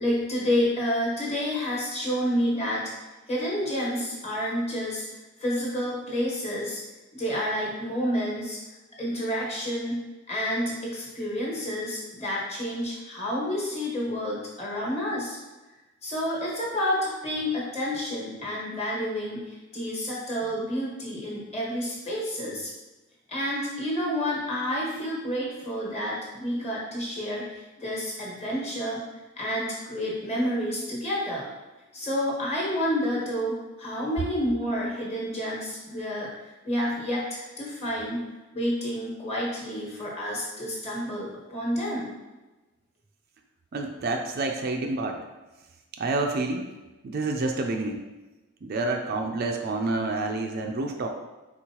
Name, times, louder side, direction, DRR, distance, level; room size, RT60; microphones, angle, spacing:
voice 1, 0.0-2.9 3.3-5.1 5.4-6.8 7.1-8.6 9.0-10.0 10.3-15.4 16.0-22.7 23.3-29.0 29.4-31.5 31.9-38.2 38.5-42.1, equal, 30° left, -5 dB, 1.3 m, -29 dB
voice 2, 43.7-45.2 45.9-46.7 47.0-48.0 48.6-51.1, right 2 dB, 45° right, 3 dB, 0.4 m, -28 dB
4.5 x 4.1 x 2.9 m, 1.1 s
head